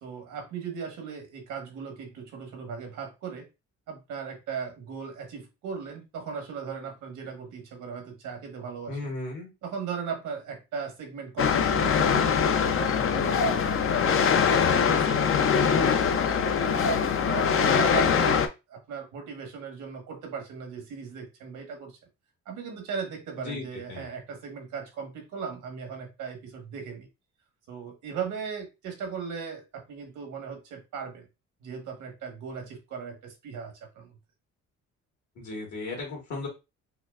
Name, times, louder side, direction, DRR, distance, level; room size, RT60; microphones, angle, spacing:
voice 1, 0.0-3.5 3.9-9.1 9.6-14.1 14.5-16.8 17.2-22.0 22.5-27.1 27.7-31.3 31.6-34.2, right 6 dB, 85° right, 4 dB, 1.4 m, -38 dB
voice 2, 8.9-9.5 23.5-23.6 23.9-24.0 35.4-36.5, left 3 dB, 65° left, 0 dB, 1.8 m, -35 dB
sound 1, 11.4-18.5, left 6 dB, 45° left, 0.6 m, -23 dB
5.6 x 2.0 x 2.4 m, 0.25 s
cardioid pair, 90°, 30 cm